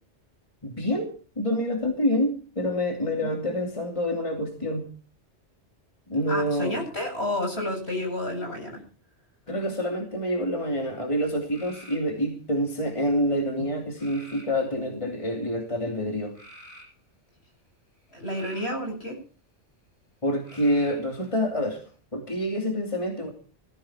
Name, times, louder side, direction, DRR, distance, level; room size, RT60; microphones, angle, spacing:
voice 1, 0.6-4.9 6.1-6.8 9.5-16.4 20.2-21.8 22.1-23.3, equal, 25° left, 3 dB, 3.1 m, -27 dB
voice 2, 6.3-8.8 18.1-19.2, left 1 dB, 60° left, 2 dB, 8.3 m, -30 dB
sound 1, 10.5-11.0 11.5-12.1 12.8-13.3 14.0-14.5 15.2-15.6 16.3-16.9 18.0-18.8 20.4-21.1, equal, 45° left, 8.4 m, -48 dB
20.0 x 15.5 x 4.5 m, 0.38 s
omnidirectional pair, 1.2 m